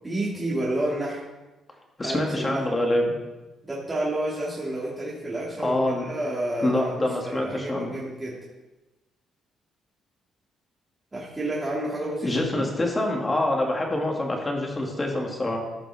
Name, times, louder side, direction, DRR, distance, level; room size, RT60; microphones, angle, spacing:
voice 1, 0.0-1.2 2.0-2.6 3.6-8.3 11.1-12.7, right 1 dB, 20° right, -6 dB, 2.4 m, -30 dB
voice 2, 2.0-3.1 5.6-6.1 6.6-7.9 12.2-15.6, left 1 dB, 25° left, 0 dB, 2.2 m, -25 dB
15.0 x 5.7 x 3.6 m, 1.1 s
cardioid pair, 90°, 0 cm